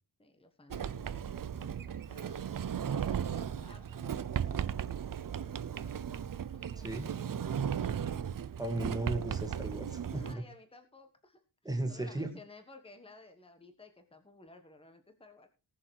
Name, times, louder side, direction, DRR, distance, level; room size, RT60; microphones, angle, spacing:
voice 1, 0.2-2.5 3.0-4.2 4.5-6.0 6.5-7.8 10.1-11.4 11.9-15.5, left 2 dB, 15° left, 7 dB, 1.4 m, -56 dB
Sliding door, 0.7-10.3, right 8 dB, 50° right, 0.7 m, -36 dB
voice 2, 6.8-7.1 8.6-10.4 11.6-12.3, right 1 dB, 10° right, 4 dB, 2.2 m, -36 dB
18.5 x 6.8 x 4.7 m, 0.31 s
wide cardioid pair, 180°, 42 cm